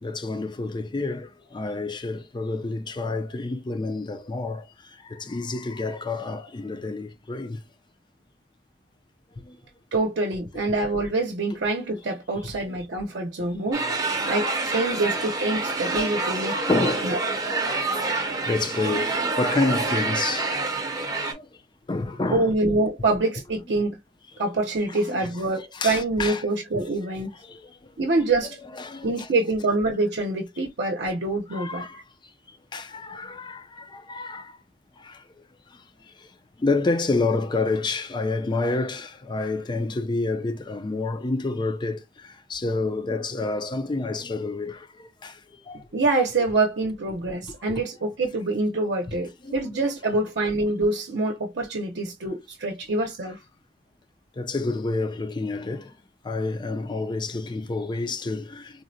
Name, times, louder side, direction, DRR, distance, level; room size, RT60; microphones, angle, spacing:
voice 1, 0.0-4.7 5.0-7.6 9.4-9.6 11.5-11.6 12.7-12.8 14.8-15.0 16.7-17.1 18.3-20.5 21.2-21.5 21.9-22.4 24.9-25.3 25.7-26.4 27.5-27.7 28.7-29.3 31.5-32.0 32.7-34.6 35.0-35.2 36.6-45.4 45.7-45.8 47.7-47.8 49.1-49.7 54.4-55.9 56.2-58.8, left 3 dB, 25° left, 0.4 m, -29 dB
voice 2, 9.9-13.9 14.2-17.2 22.3-24.0 24.4-27.3 28.0-28.6 29.0-31.9 45.9-53.4, right 2 dB, 70° right, 0.7 m, -25 dB
sound 1, 13.7-21.3, right 3 dB, 20° right, 0.6 m, -27 dB
3.7 x 2.1 x 2.6 m
head